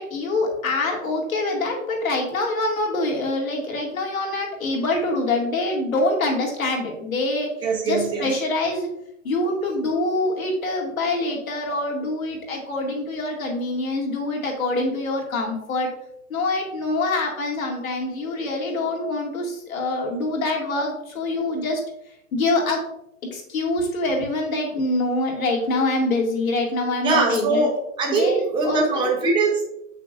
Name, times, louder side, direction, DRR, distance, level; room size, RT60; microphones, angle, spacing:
voice 1, 0.0-7.5 7.9-8.9 9.2-15.9 16.3-21.8 22.3-22.8 23.2-27.7 28.1-29.1, left 2 dB, 85° left, 0 dB, 2.3 m, -25 dB
voice 2, 7.6-8.3 27.0-29.6, right 3 dB, 10° right, -1 dB, 1.1 m, -22 dB
6.9 x 5.8 x 2.5 m, 0.79 s
hypercardioid pair, 155°, 40 cm